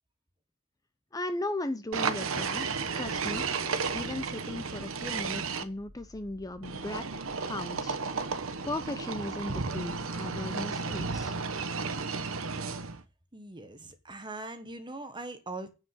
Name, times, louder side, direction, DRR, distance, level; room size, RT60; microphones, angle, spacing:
voice 1, 1.1-3.5 3.9-8.0 8.6-11.4, left 2 dB, 15° left, 0.7 m, -37 dB
sound 1, 1.9-5.6 6.6-13.0, right 4 dB, 75° right, 1.0 m, -33 dB
sound 2, 2.6-10.7, left 1 dB, 60° left, 1.6 m, -58 dB
voice 2, 13.3-15.7, right 2 dB, 20° right, 1.3 m, -41 dB
9.6 x 5.0 x 7.7 m
head